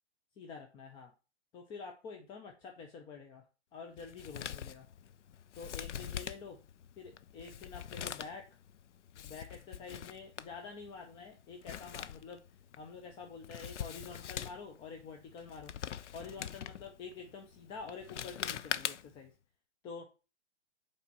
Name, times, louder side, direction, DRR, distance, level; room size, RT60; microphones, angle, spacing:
voice 1, 0.4-1.1 1.5-3.4 3.7-4.9 5.6-6.6 7.0-8.5 9.2-12.4 12.8-15.7 16.1-19.3 19.8-20.1, left 5 dB, 15° left, 4 dB, 0.5 m, -47 dB
Male speech man speaking, 4.0-19.3, left 9 dB, 90° left, 0.6 m, -44 dB
5.7 x 4.3 x 5.9 m, 0.32 s
hypercardioid pair, 140°, 34 cm